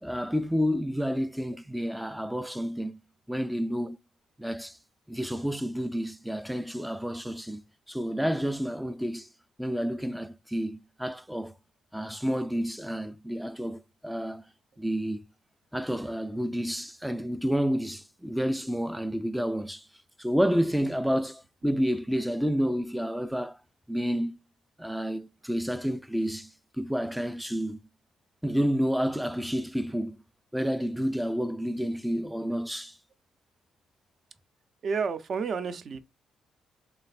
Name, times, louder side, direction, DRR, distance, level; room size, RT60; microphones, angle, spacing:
voice 1, 0.0-3.0 3.3-4.0 4.4-4.8 5.1-7.6 7.9-9.3 9.6-11.5 11.9-14.4 14.8-15.2 15.7-19.9 20.2-23.6 23.9-24.4 24.8-27.8 28.4-30.2 30.5-33.0, equal, 5° right, 0.3 m, -30 dB
voice 2, 34.8-36.0, right 5 dB, 55° right, 0.6 m, -30 dB
3.3 x 3.1 x 4.1 m
cardioid pair, 90°, 0 cm